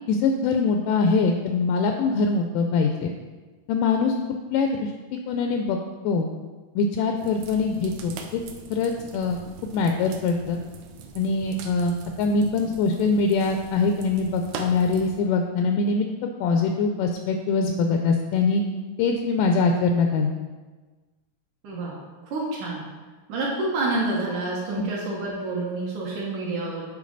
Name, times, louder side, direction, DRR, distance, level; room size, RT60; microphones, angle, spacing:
voice 1, 0.1-3.1 3.7-4.1 4.5-5.8 6.0-6.3 6.8-8.4 8.7-9.4 9.7-10.6 11.2-18.6 19.0-20.3, left 4 dB, 85° left, 4 dB, 1.9 m, -23 dB
sound 1, 7.2-15.2, right 5 dB, 80° right, 1.7 m, -42 dB
voice 2, 21.6-22.8 23.3-26.8, right 2 dB, 65° right, -4 dB, 2.4 m, -28 dB
8.3 x 5.0 x 4.0 m, 1.3 s
omnidirectional pair, 4.2 m